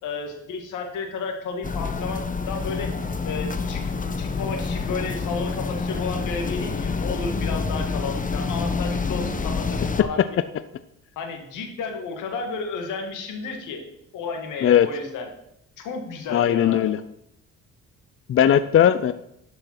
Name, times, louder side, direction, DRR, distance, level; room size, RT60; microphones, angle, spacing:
voice 1, 0.0-2.9 3.2-10.4 11.2-13.8 14.1-15.3 15.8-16.9, left 4 dB, 90° left, 4 dB, 2.2 m, -32 dB
sound 1, 1.6-10.0, left 4 dB, 25° left, 1.0 m, -27 dB
voice 2, 16.3-17.0 18.3-19.1, left 10 dB, 45° left, 13 dB, 0.5 m, -18 dB
12.0 x 5.8 x 5.9 m, 0.77 s
cardioid pair, 90°, 30 cm